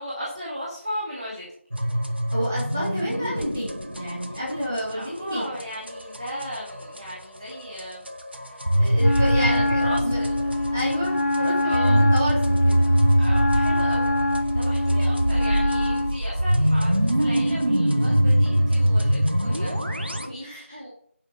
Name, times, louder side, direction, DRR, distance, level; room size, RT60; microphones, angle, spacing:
voice 1, 0.0-1.4 4.9-8.0 8.8-10.7 11.6-12.1 13.2-20.9, equal, 30° right, -6 dB, 2.2 m, -36 dB
sound 1, 1.7-7.1 7.5-20.3, equal, 50° right, 1.2 m, -23 dB
voice 2, 2.3-5.6 8.7-10.2 10.7-13.1 20.2-20.8, equal, 10° right, -7 dB, 1.6 m, -30 dB
Wind instrument woodwind instrument, 9.0-16.2, left 1 dB, 75° left, 0.4 m, -25 dB
8.4 x 5.2 x 6.4 m, 0.64 s
figure-of-eight pair, 175°, 7 cm